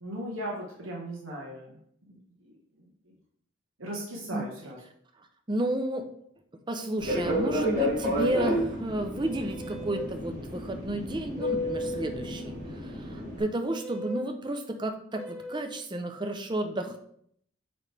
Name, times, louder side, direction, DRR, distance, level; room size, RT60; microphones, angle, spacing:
voice 1, 0.0-3.1 3.8-4.8, right 1 dB, 80° right, -4 dB, 1.3 m, -38 dB
voice 2, 5.5-6.1 6.5-17.0, right 1 dB, 20° right, 5 dB, 0.5 m, -32 dB
Fixed-wing aircraft airplane, 7.0-13.4, equal, 40° right, 2.0 m, -31 dB
Metal Gate Squeak, 9.2-10.1 11.4-12.0 13.6-14.3 15.1-15.8, right 1 dB, 5° left, 1.2 m, -40 dB
8.7 x 3.2 x 3.3 m, 0.67 s
head